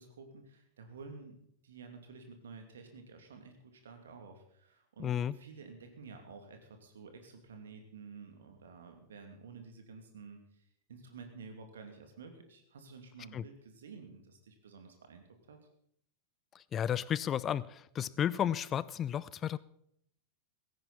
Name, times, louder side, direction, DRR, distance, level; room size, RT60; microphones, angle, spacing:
voice 1, 0.0-1.4 1.6-10.6 10.9-15.6, right 4 dB, 65° right, 2.6 m, -51 dB
voice 2, 5.0-5.3 13.3-13.4 16.7-19.6, left 9 dB, 25° left, 0.5 m, -33 dB
16.5 x 14.5 x 4.2 m
figure-of-eight pair, 90°, 0 cm